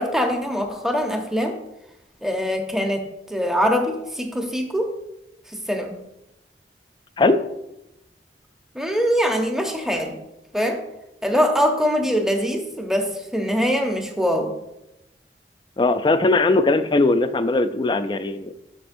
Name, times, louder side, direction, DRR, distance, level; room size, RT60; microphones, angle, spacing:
voice 1, 0.0-1.6 2.2-4.9 5.5-6.0 8.7-10.2 10.5-10.8 11.2-14.5, equal, 5° right, 3 dB, 0.8 m, -23 dB
voice 2, 15.8-18.5, left 2 dB, 25° left, 10 dB, 0.3 m, -19 dB
12.5 x 5.1 x 2.6 m, 0.90 s
head